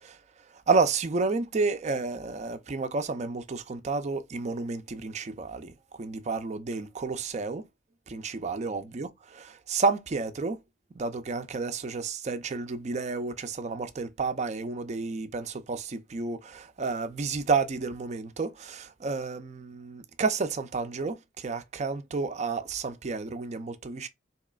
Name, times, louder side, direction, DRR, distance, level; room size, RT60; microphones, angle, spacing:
voice 1, 0.7-5.7 6.0-7.7 8.1-9.1 9.4-10.6 10.9-24.1, right 4 dB, 40° right, 0.4 m, -30 dB
4.0 x 2.9 x 2.3 m
head